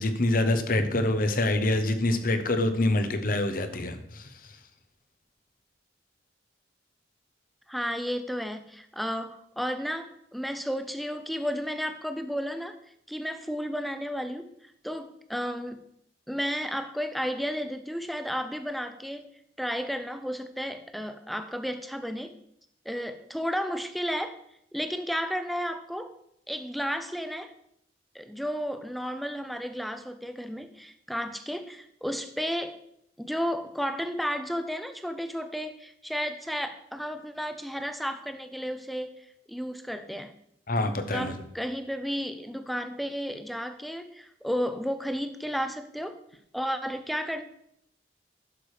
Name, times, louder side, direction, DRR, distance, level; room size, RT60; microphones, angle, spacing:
voice 1, 0.0-4.6 40.7-41.4, left 2 dB, 50° left, 9 dB, 1.0 m, -26 dB
voice 2, 7.7-12.8 13.1-15.8 16.3-19.3 19.6-22.4 22.8-24.4 24.7-26.1 26.5-27.5 28.1-32.8 33.2-40.3 41.1-46.2 46.5-47.4, equal, ahead, 9 dB, 0.7 m, -33 dB
11.0 x 6.8 x 4.9 m, 0.74 s
head